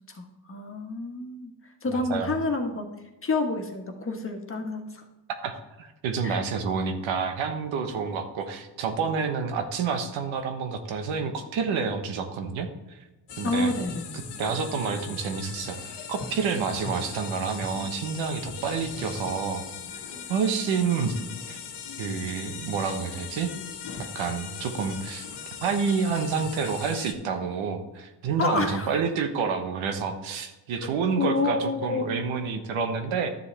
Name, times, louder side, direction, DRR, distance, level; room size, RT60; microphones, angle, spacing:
voice 1, 0.1-1.5 1.8-2.9 3.2-5.0 6.2-6.4 13.4-14.2 28.4-28.9 31.2-32.3, left 2 dB, 30° left, 4 dB, 1.5 m, -28 dB
voice 2, 1.9-2.3 5.4-13.0 13.4-13.7 14.1-15.8 16.1-19.6 20.3-21.1 21.5-21.6 22.0-23.5 24.0-25.3 25.6-33.3, right 5 dB, 85° right, 7 dB, 1.2 m, -29 dB
sound 1, 13.3-27.1, left 6 dB, 60° left, 1.3 m, -39 dB
12.0 x 7.1 x 3.4 m, 1.0 s
cardioid pair, 85°, 46 cm